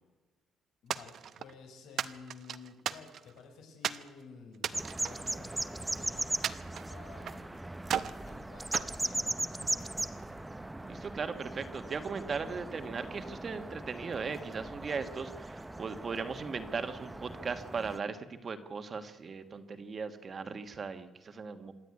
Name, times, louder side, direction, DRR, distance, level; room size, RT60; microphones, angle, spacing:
voice 1, 0.8-7.7 8.1-10.4 13.4-13.7, left 5 dB, 85° left, 3 dB, 5.9 m, -53 dB
sound 1, 0.9-1.5 2.0-3.4 3.8-4.1 4.5-5.9 6.4-7.4 7.8-8.2 8.7-9.8, right 9 dB, 55° right, 0.8 m, -36 dB
sound 2, 4.7-18.0, right 2 dB, 10° right, 0.7 m, -39 dB
voice 2, 10.8-21.7, right 5 dB, 35° right, 9 dB, 1.5 m, -38 dB
26.0 x 10.5 x 9.7 m, 1.2 s
cardioid pair, 145°, 0 cm